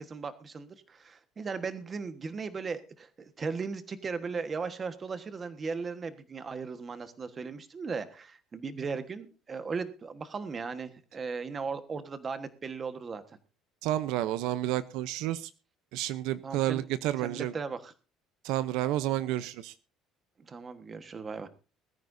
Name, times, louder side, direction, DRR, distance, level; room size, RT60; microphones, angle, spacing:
voice 1, 0.0-13.2 16.4-16.8 17.2-17.9 20.4-21.5, right 5 dB, 20° right, 10 dB, 1.3 m, -37 dB
voice 2, 13.8-15.5 15.9-17.5 18.4-19.7, right 14 dB, 70° right, 14 dB, 0.7 m, -30 dB
20.5 x 13.5 x 2.7 m, 0.33 s
cardioid pair, 175°, 0 cm